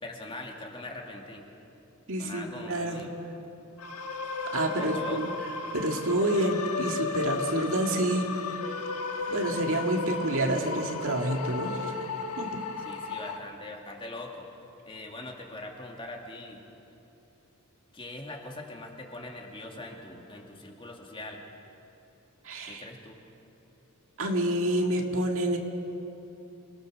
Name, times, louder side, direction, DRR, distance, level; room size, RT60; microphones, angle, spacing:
voice 1, 0.0-1.5 2.2-3.1 4.6-5.4 10.1-10.2 12.9-14.5 14.9-16.6 17.9-21.4 22.7-23.2, left 2 dB, 25° left, 1 dB, 2.4 m, -42 dB
voice 2, 2.1-3.0 4.5-5.3 5.7-8.6 9.3-11.9 12.4-12.6 22.4-22.9 24.2-25.6, right 1 dB, 65° right, 2 dB, 2.1 m, -28 dB
sound 1, 3.8-13.4, left 4 dB, 75° left, 1.6 m, -34 dB
28.5 x 20.0 x 6.4 m, 3.0 s
head